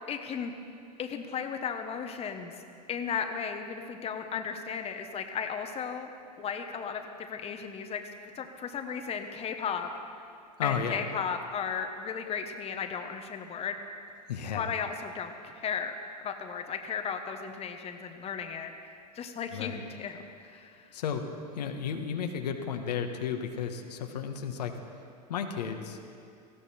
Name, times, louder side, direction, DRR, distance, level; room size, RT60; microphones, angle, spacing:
voice 1, 0.1-0.5 1.0-6.1 6.4-8.1 8.4-9.9 10.6-13.8 14.5-16.0 16.2-18.7 19.1-20.9, left 7 dB, 30° left, 5 dB, 1.2 m, -35 dB
voice 2, 10.6-11.0 14.3-14.7 19.5-19.8 20.9-21.2 21.5-24.7 25.3-26.1, left 7 dB, 75° left, 4 dB, 1.4 m, -33 dB
18.5 x 15.0 x 4.4 m, 2.4 s
hypercardioid pair, 90°, 21 cm